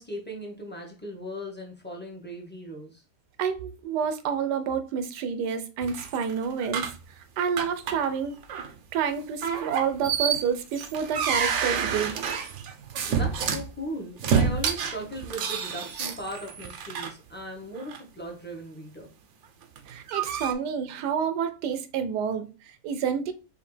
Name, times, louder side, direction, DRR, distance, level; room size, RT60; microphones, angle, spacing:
voice 1, 0.0-3.0 13.0-19.1, equal, 10° left, 0.7 m, -38 dB
voice 2, 3.4-8.3 8.9-12.9 19.9-23.3, right 7 dB, 80° right, 1.2 m, -29 dB
sound 1, 5.8-7.0 7.6-8.2 8.4-8.7 9.4-13.7 14.2-17.1 17.8-18.0 19.6-20.5, right 6 dB, 65° right, 0.7 m, -28 dB
5.0 x 2.8 x 3.2 m
omnidirectional pair, 1.8 m